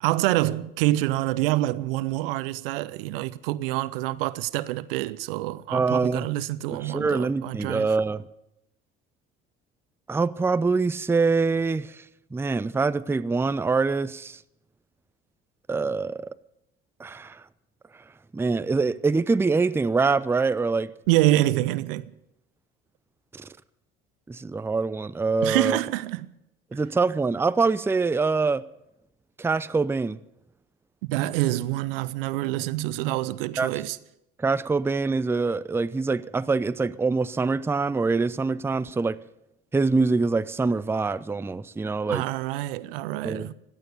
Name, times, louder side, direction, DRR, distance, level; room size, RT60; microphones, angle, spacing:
voice 1, 0.0-7.9 21.1-22.1 25.4-26.3 26.7-26.8 31.1-34.0 42.1-43.5, right 16 dB, 75° right, 0.7 m, -26 dB
voice 2, 5.7-6.3 6.7-8.2 10.1-12.0 12.3-14.4 15.7-16.3 17.0-17.4 18.3-20.9 23.3-23.5 24.3-25.8 26.7-28.6 29.4-30.2 33.6-33.7 34.4-39.2 39.7-42.2 43.2-43.5, right 4 dB, 10° right, 0.5 m, -24 dB
16.5 x 11.0 x 6.8 m
hypercardioid pair, 60°, 29 cm